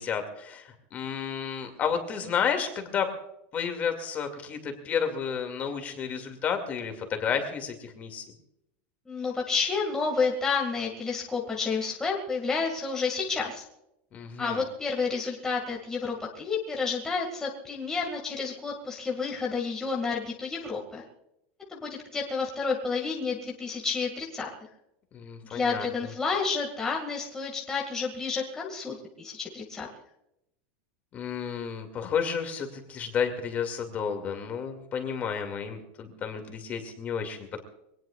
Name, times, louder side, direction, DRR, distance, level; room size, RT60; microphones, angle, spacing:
voice 1, 0.0-3.1 3.5-8.2 14.1-14.6 25.1-26.1 31.1-37.6, left 7 dB, 25° left, 5 dB, 2.4 m, -31 dB
voice 2, 9.1-13.7 14.4-21.0 21.7-24.5 25.5-29.9, left 4 dB, 10° left, -2 dB, 2.1 m, -30 dB
24.5 x 18.5 x 2.4 m, 0.81 s
supercardioid pair, 165°, 6 cm